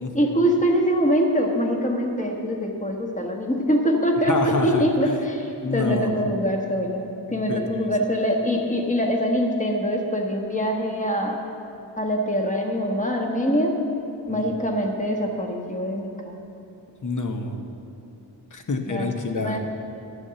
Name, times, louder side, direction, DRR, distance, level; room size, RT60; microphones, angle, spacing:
voice 1, 0.1-11.4 12.0-13.7 14.3-16.4 18.9-19.1 19.4-19.6, equal, 15° left, 1 dB, 1.3 m, -24 dB
voice 2, 4.2-4.8 5.6-6.1 7.3-7.6 14.3-14.6 17.0-17.6 18.5-19.6, left 3 dB, 45° left, 5 dB, 1.0 m, -27 dB
11.0 x 7.1 x 6.9 m, 2.7 s
wide cardioid pair, 125°, 44 cm